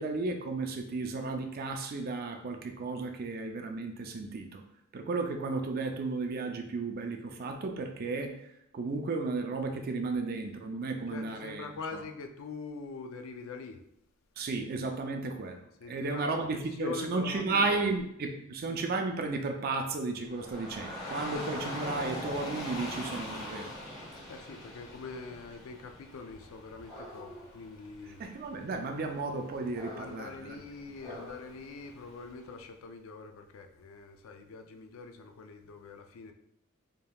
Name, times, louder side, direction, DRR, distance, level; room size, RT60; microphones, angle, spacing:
voice 1, 0.0-4.6 4.9-11.7 14.4-23.7 28.2-30.6, right 3 dB, 45° right, 4 dB, 0.4 m, -34 dB
voice 2, 11.1-13.8 15.8-17.8 24.3-28.2 30.0-36.3, left 4 dB, 70° left, 6 dB, 0.4 m, -44 dB
Dog / Rain, 20.3-32.4, left 1 dB, 20° left, 1.0 m, -43 dB
5.1 x 2.8 x 2.3 m, 0.76 s
head